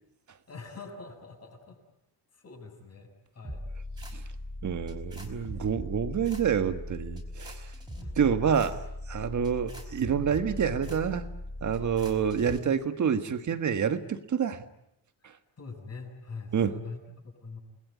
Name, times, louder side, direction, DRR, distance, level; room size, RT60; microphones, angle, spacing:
voice 1, 0.5-1.8 2.3-3.6 5.5-5.7 7.9-8.1 15.6-17.6, left 4 dB, 35° left, 2 dB, 6.9 m, -44 dB
sound 1, 3.4-12.6, left 1 dB, 10° right, 4.9 m, -39 dB
voice 2, 4.6-7.7 8.2-8.8 9.1-11.3 11.6-14.6 15.2-15.3 16.5-16.8, right 7 dB, 40° right, 9 dB, 1.7 m, -28 dB
29.0 x 20.5 x 9.7 m, 0.85 s
wide cardioid pair, 170°, 44 cm